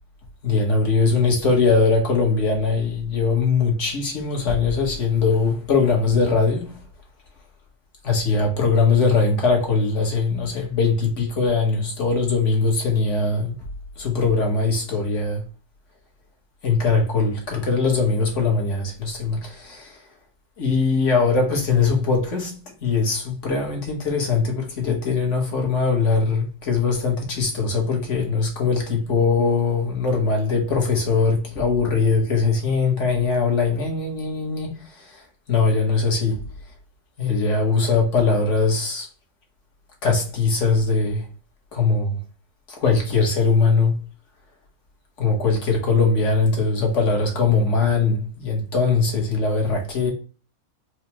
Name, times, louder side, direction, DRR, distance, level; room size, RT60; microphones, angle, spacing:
voice 1, 0.4-6.8 8.0-13.5 14.0-15.4 16.6-20.0 20.6-35.2 35.5-36.4 37.2-39.1 40.0-41.3 41.7-42.2 42.7-44.0 45.2-50.1, left 4 dB, 55° left, 1.3 m, -21 dB
4.7 x 2.1 x 2.8 m
omnidirectional pair, 1.6 m